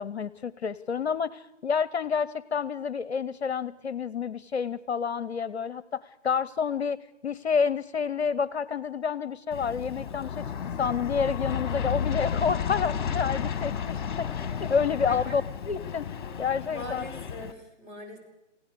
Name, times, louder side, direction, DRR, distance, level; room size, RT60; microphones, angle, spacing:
voice 1, 0.0-10.5 10.8-16.1 16.4-17.0, left 6 dB, 55° left, 19 dB, 0.9 m, -29 dB
Aircraft, 9.5-17.5, left 7 dB, 40° left, 1.7 m, -32 dB
voice 2, 14.9-15.4 16.7-18.2, left 1 dB, 20° right, -2 dB, 6.0 m, -41 dB
28.5 x 16.5 x 6.8 m, 0.84 s
figure-of-eight pair, 145°, 38 cm